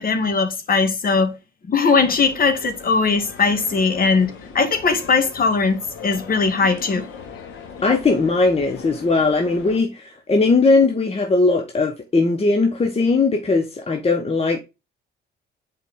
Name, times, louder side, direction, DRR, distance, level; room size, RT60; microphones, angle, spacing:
voice 1, 0.0-1.3 1.7-7.1, left 4 dB, 45° left, 2.0 m, -19 dB
sound 1, 2.0-9.8, left 6 dB, 85° left, 2.0 m, -40 dB
voice 2, 7.8-14.6, left 3 dB, 30° left, 1.1 m, -19 dB
7.5 x 4.8 x 3.6 m
cardioid pair, 90°, 20 cm